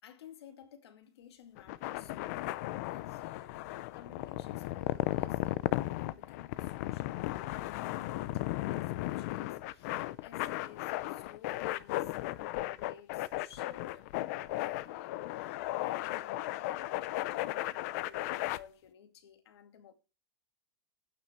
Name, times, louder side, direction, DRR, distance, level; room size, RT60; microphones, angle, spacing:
voice 1, 0.0-19.9, left 9 dB, 80° left, 2.4 m, -56 dB
sound 1, 1.6-18.6, left 16 dB, 40° left, 0.5 m, -35 dB
12.0 x 9.2 x 4.5 m
supercardioid pair, 175°, 14 cm